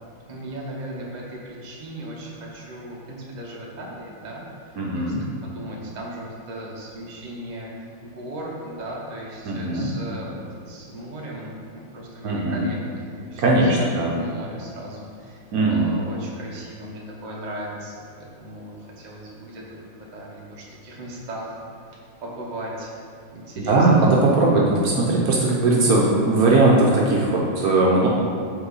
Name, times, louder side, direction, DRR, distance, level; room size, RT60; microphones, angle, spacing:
voice 1, 0.3-5.1 5.4-21.5 21.9-22.9 23.3-24.0, right 1 dB, 45° right, -4 dB, 0.6 m, -37 dB
voice 2, 4.8-5.2 9.5-9.9 12.2-12.7 13.4-14.1 15.5-15.9 23.6-28.1, right 2 dB, 60° right, -4 dB, 1.0 m, -19 dB
5.7 x 4.4 x 4.0 m, 2.2 s
omnidirectional pair, 2.1 m